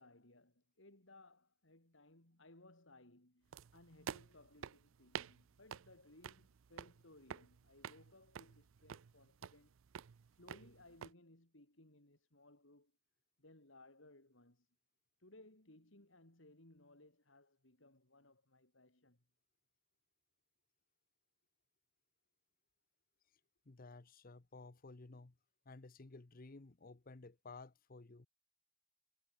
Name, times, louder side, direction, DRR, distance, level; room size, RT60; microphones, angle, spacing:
voice 1, 0.0-9.7 10.3-12.9 13.4-14.7 15.2-19.2, left 2 dB, 65° left, 3.6 m, -63 dB
sound 1, 3.5-11.1, right 7 dB, 70° right, 0.5 m, -51 dB
voice 2, 23.7-25.3 25.7-28.3, left 3 dB, 45° left, 0.8 m, -55 dB
head